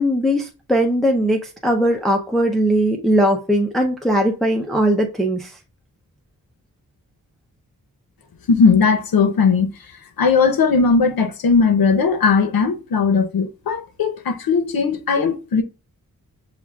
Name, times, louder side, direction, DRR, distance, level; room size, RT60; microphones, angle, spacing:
voice 1, 0.0-5.6, equal, ahead, 0.5 m, -19 dB
voice 2, 8.5-9.7 10.2-15.6, left 5 dB, 85° left, 0.8 m, -18 dB
7.0 x 2.4 x 2.3 m
wide cardioid pair, 110°, 35 cm